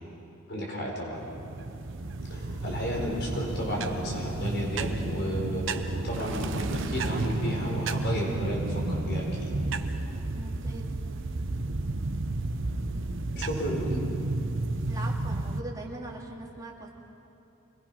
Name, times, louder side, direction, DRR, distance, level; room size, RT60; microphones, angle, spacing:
voice 1, 0.5-1.2 2.2-9.5 13.3-13.9, equal, 55° left, -2 dB, 4.3 m, -33 dB
sound 1, 1.1-15.6, right 2 dB, 65° right, 0.9 m, -32 dB
voice 2, 3.6-3.9 10.3-10.9 14.9-16.9, right 2 dB, 20° right, -3 dB, 2.5 m, -41 dB
25.5 x 20.5 x 5.9 m, 2.8 s
head